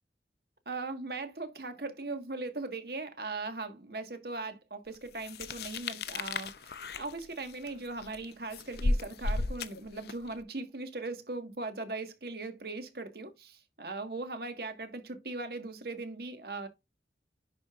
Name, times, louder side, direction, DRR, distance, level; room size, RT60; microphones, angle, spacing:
voice 1, 0.6-16.7, right 3 dB, 60° right, 1.6 m, -39 dB
sound 1, 5.2-10.3, left 2 dB, 60° left, 0.6 m, -34 dB
10.5 x 5.1 x 2.5 m
head